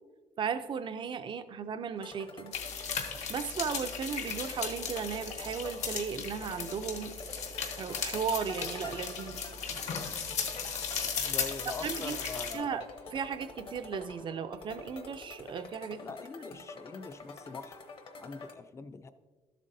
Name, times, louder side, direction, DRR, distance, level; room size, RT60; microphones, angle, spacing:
voice 1, 0.4-2.5 3.3-7.1 7.7-9.4 11.8-12.2 12.5-12.8 13.1-16.0 16.5-16.6, right 6 dB, 40° right, 11 dB, 0.4 m, -36 dB
sound 1, 2.0-18.5, left 3 dB, 45° left, 0.8 m, -48 dB
sound 2, 2.5-12.5, left 6 dB, 65° left, 1.0 m, -36 dB
voice 2, 11.2-12.8 16.0-17.8 18.2-19.1, left 4 dB, 20° left, 11 dB, 0.4 m, -43 dB
13.0 x 7.4 x 2.7 m, 1.4 s
cardioid pair, 170°, 12 cm